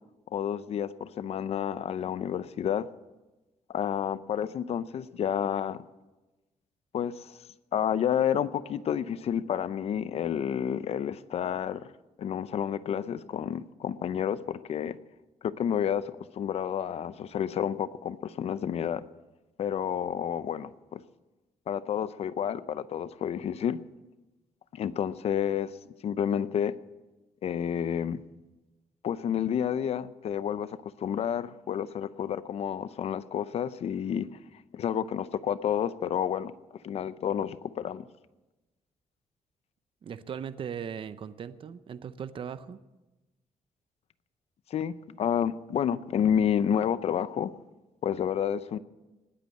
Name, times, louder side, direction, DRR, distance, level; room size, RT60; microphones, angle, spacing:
voice 1, 0.3-2.9 3.7-5.8 6.9-7.4 7.7-11.9 12.2-15.0 15.4-16.0 16.3-19.0 19.6-21.0 21.7-23.8 24.7-25.7 26.0-26.7 27.4-28.2 29.0-34.3 34.7-36.5 36.8-38.0 44.7-47.5 48.0-48.8, left 9 dB, 60° left, 15 dB, 0.6 m, -30 dB
voice 2, 40.0-42.8, right 8 dB, 45° right, 13 dB, 0.7 m, -38 dB
19.5 x 8.4 x 7.7 m, 1.1 s
cardioid pair, 150°, 12 cm